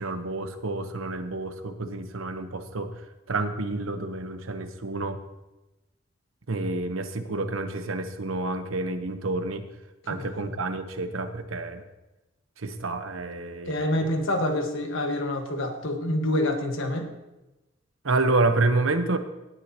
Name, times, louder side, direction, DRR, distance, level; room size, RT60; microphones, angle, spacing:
voice 1, 0.0-2.9 3.3-5.2 6.5-9.6 10.1-11.8 12.6-14.0 18.0-19.2, right 2 dB, 90° right, 8 dB, 1.0 m, -28 dB
voice 2, 13.7-17.1, left 1 dB, 70° left, 4 dB, 1.6 m, -27 dB
17.5 x 9.9 x 3.0 m, 1.0 s
head